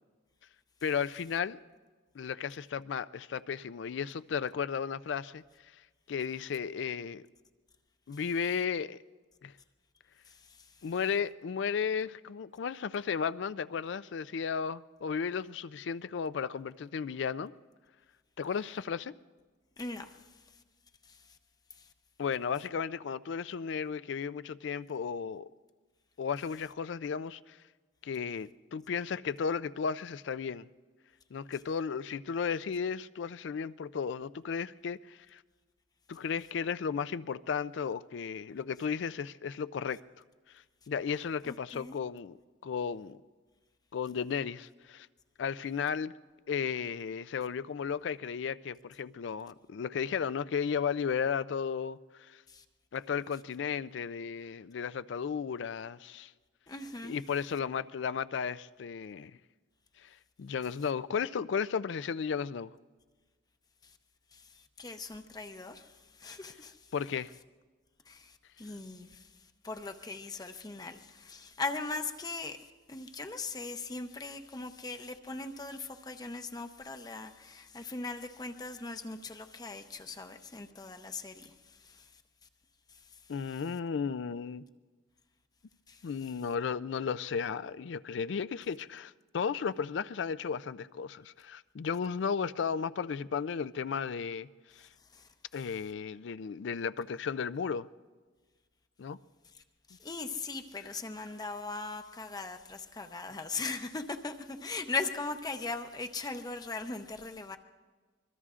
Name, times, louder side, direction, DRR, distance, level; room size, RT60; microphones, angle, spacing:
voice 1, 0.8-1.6 2.1-5.4 6.1-7.2 8.1-9.0 9.4-9.5 10.8-17.5 18.4-19.1 22.2-25.5 26.2-27.6 28.0-30.7 31.3-35.4 36.1-40.0 40.9-42.4 42.6-43.2 43.9-45.1 45.4-46.1 46.5-52.4 52.9-56.3 57.0-59.3 60.0-60.1 60.4-62.7 66.9-67.3 83.3-84.7 86.0-94.5 94.8-94.9 95.5-97.9 99.0-99.2, left 6 dB, 70° left, 0.4 m, -34 dB
voice 2, 19.8-20.1 41.4-42.0 52.5-52.6 56.7-57.2 64.3-64.4 64.8-65.9 66.2-66.8 68.1-69.3 69.6-81.5 81.8-82.0 85.9-86.0 95.1-95.2 99.9-107.6, left 3 dB, 20° left, 0.6 m, -39 dB
24.5 x 22.5 x 2.5 m
head